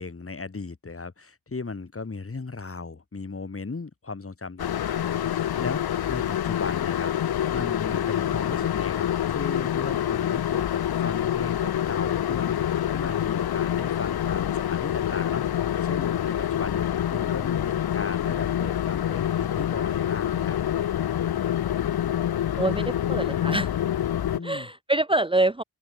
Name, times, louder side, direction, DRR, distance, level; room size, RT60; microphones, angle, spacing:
voice 1, 0.0-20.6 24.3-24.7, left 4 dB, 35° left, 3.7 m, -36 dB
sound 1, 4.6-24.4, left 11 dB, 75° left, 0.7 m, -26 dB
voice 2, 22.6-23.7 24.4-25.6, right 2 dB, 15° right, 0.9 m, -25 dB
open air
wide cardioid pair, 110°, 38 cm